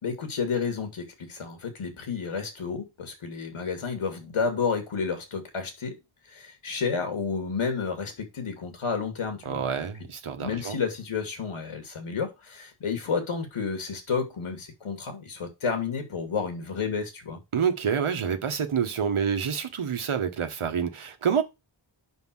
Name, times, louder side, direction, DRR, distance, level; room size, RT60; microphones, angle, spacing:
voice 1, 0.0-5.9 6.3-9.6 10.4-17.4, left 5 dB, 80° left, 2.6 m, -31 dB
voice 2, 9.4-10.8 17.5-21.4, right 7 dB, 75° right, 1.5 m, -27 dB
5.8 x 5.2 x 6.3 m
wide cardioid pair, 135°, 49 cm